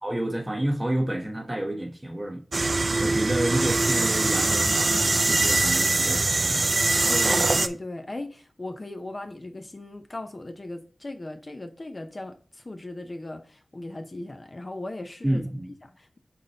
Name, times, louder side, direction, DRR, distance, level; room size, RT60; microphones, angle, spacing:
voice 1, 0.0-2.7 3.0-6.7 15.2-15.7, right 1 dB, 20° right, 1.1 m, -30 dB
sound 1, 2.5-7.7, right 3 dB, 45° right, 0.4 m, -23 dB
voice 2, 7.1-15.4 15.8-16.2, left 2 dB, 35° left, 0.5 m, -37 dB
5.9 x 3.9 x 4.1 m
wide cardioid pair, 95°, 0 cm